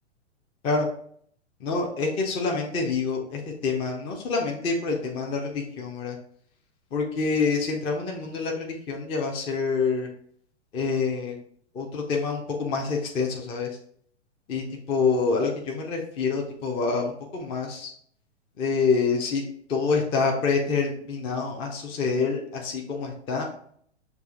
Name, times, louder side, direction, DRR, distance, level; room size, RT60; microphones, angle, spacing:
voice 1, 1.6-6.2 6.9-10.1 10.7-11.4 11.7-13.7 14.5-17.9 18.6-19.4 19.7-23.5, left 4 dB, 15° left, 0 dB, 0.4 m, -27 dB
6.6 x 2.4 x 2.4 m, 0.62 s
hypercardioid pair, 115°, 36 cm